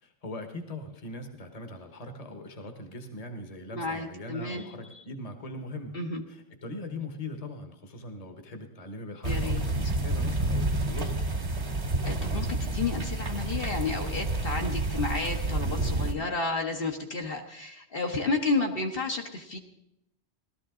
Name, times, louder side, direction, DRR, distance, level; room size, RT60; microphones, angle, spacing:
voice 1, 0.0-6.0 6.3-11.2, left 1 dB, 35° left, 6 dB, 1.3 m, -40 dB
voice 2, 3.7-5.0 5.9-6.2 9.2-9.6 12.0-19.6, left 3 dB, 60° left, 2 dB, 1.4 m, -31 dB
sound 1, 9.2-16.1, right 2 dB, 75° right, 2.0 m, -29 dB
17.0 x 13.0 x 3.7 m, 0.80 s
omnidirectional pair, 1.1 m